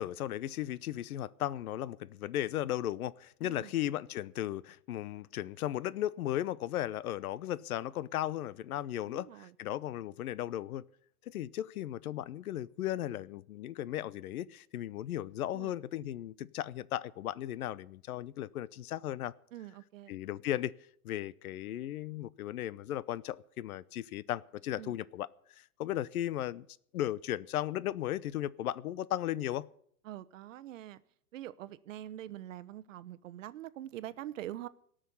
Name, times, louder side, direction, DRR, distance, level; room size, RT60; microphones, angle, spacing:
voice 1, 0.0-10.8 11.3-19.3 20.1-20.7 21.0-25.3 25.6-26.7 26.9-29.7, left 13 dB, 70° left, 0.8 m, -36 dB
voice 2, 3.4-3.8 9.1-9.5 15.5-15.7 19.5-20.2 24.8-25.0 30.0-31.0 31.3-34.7, right 13 dB, 55° right, 0.9 m, -44 dB
18.0 x 6.4 x 9.6 m
hypercardioid pair, 150°, 45 cm